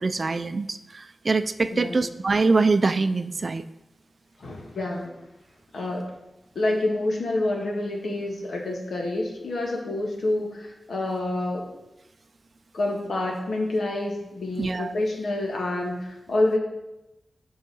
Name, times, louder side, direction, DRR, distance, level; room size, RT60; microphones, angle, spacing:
voice 1, 0.0-3.6 14.6-14.9, right 3 dB, 45° right, 12 dB, 0.4 m, -24 dB
voice 2, 4.4-5.2 5.7-6.0 6.6-11.7 12.7-16.6, left 2 dB, 80° left, 0 dB, 1.8 m, -27 dB
8.3 x 5.6 x 5.4 m, 0.95 s
wide cardioid pair, 110°, 0 cm